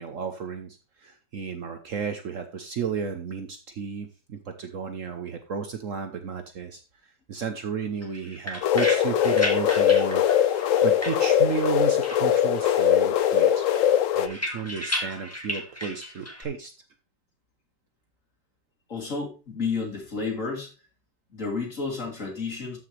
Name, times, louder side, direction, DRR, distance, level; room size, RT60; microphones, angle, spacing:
voice 1, 0.0-6.8 7.3-13.7 14.1-16.7, right 6 dB, 55° right, 7 dB, 1.1 m, -33 dB
sound 1, 8.0-11.8 12.0-12.9 13.2-16.4, left 1 dB, 10° left, 1.6 m, -34 dB
sound 2, 8.6-14.3, left 10 dB, 65° left, 0.8 m, -21 dB
voice 2, 18.9-20.7 21.3-22.8, left 4 dB, 45° left, -2 dB, 3.3 m, -31 dB
13.5 x 5.9 x 3.2 m, 0.32 s
omnidirectional pair, 1.8 m